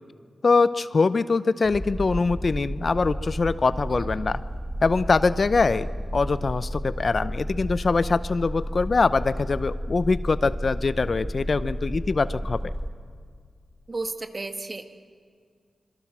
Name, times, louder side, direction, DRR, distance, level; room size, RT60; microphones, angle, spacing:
voice 1, 0.4-4.4 4.8-12.6, left 4 dB, 50° left, 15 dB, 0.6 m, -23 dB
sound 1, 1.6-12.9, equal, ahead, 1.8 m, -32 dB
voice 2, 13.9-14.9, right 3 dB, 40° right, 7 dB, 1.6 m, -33 dB
25.5 x 23.5 x 6.1 m, 2.1 s
cardioid pair, 70°, 0 cm